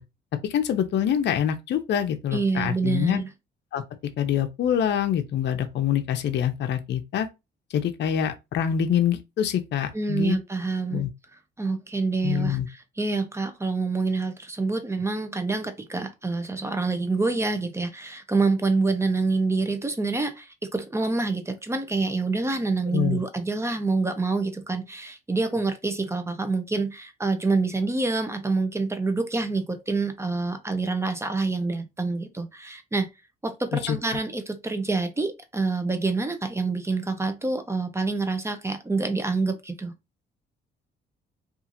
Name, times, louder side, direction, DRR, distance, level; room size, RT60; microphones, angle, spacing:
voice 1, 0.4-3.2 3.7-3.8 4.2-7.3 7.7-10.4 10.9-11.1 12.2-12.7 22.9-23.2 33.7-34.0, left 9 dB, 60° left, 0.5 m, -25 dB
voice 2, 2.3-3.3 9.9-11.0 11.6-33.1 33.4-39.9, right 3 dB, 15° right, 0.5 m, -27 dB
2.8 x 2.4 x 2.5 m
cardioid pair, 90°, 20 cm